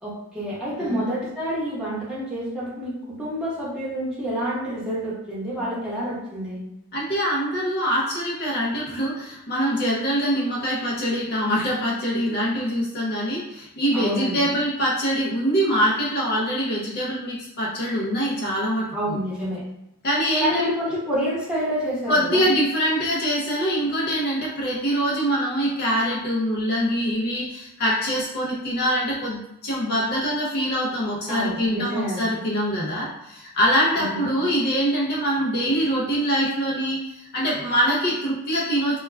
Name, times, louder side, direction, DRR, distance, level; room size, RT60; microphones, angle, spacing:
voice 1, 0.0-6.6 13.9-14.6 18.9-19.6 20.4-22.4 31.3-32.4 34.0-34.3, equal, 5° right, -9 dB, 0.9 m, -28 dB
voice 2, 6.9-19.2 20.0-20.8 22.1-39.0, equal, 45° left, -4 dB, 0.5 m, -24 dB
2.2 x 2.2 x 3.2 m, 0.84 s
head